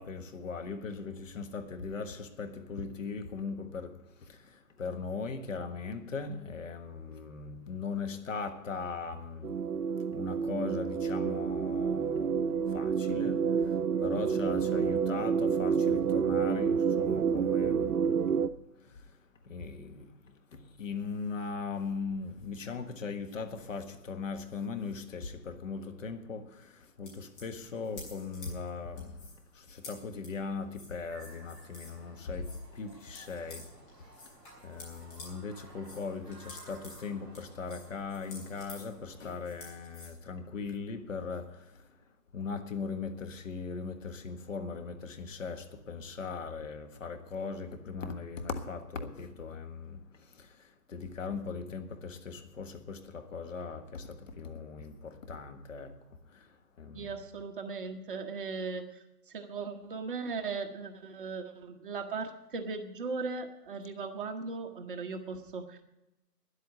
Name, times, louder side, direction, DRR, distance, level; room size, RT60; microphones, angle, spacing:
voice 1, 0.0-9.6 10.1-18.4 18.7-19.2 19.4-34.4 34.6-41.9 42.3-56.0 56.3-57.1, left 4 dB, 50° left, 1.5 m, -39 dB
sound 1, 9.4-18.5, right 6 dB, 70° right, 0.7 m, -29 dB
sound 2, 27.0-32.0 32.3-35.3 35.6-40.1, left 2 dB, 30° left, 4.8 m, -51 dB
sound 3, 31.1-39.3, right 2 dB, 10° right, 4.1 m, -56 dB
voice 2, 56.9-58.8 59.3-65.8, right 4 dB, 35° right, 1.1 m, -38 dB
10.5 x 8.3 x 9.8 m
hypercardioid pair, 150°, 48 cm